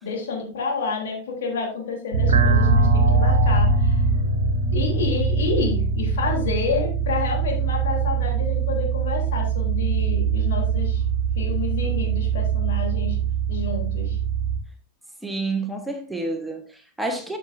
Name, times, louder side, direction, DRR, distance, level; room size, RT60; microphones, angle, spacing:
voice 1, 0.0-4.0 4.7-11.0 11.3-14.2, left 4 dB, 60° left, 0 dB, 3.3 m, -29 dB
sound 1, 2.1-14.6, right 4 dB, 65° right, 1.3 m, -22 dB
voice 2, 15.2-17.4, right 2 dB, 5° right, 3 dB, 1.3 m, -29 dB
12.5 x 6.7 x 2.6 m, 0.38 s
figure-of-eight pair, 90°, 0 cm